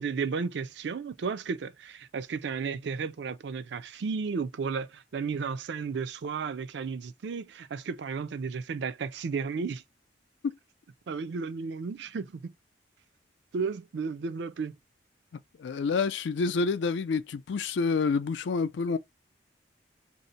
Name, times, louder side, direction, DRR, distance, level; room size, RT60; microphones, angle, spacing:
voice 1, 0.0-9.8 11.1-12.5 13.5-14.8, right 5 dB, 65° right, 0.4 m, -33 dB
voice 2, 15.6-19.0, left 4 dB, 75° left, 0.4 m, -28 dB
2.7 x 2.1 x 3.8 m
head